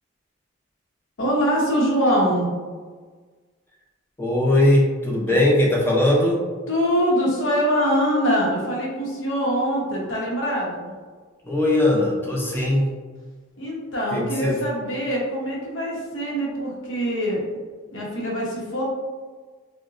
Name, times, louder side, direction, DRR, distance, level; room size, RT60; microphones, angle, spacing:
voice 1, 1.2-2.5 5.3-5.4 6.7-10.9 13.6-17.4 17.9-18.8, equal, 70° left, -3 dB, 0.8 m, -23 dB
voice 2, 4.2-6.4 11.4-12.9 14.1-14.6, left 1 dB, 10° left, -3 dB, 0.5 m, -20 dB
3.8 x 2.1 x 2.5 m, 1.5 s
head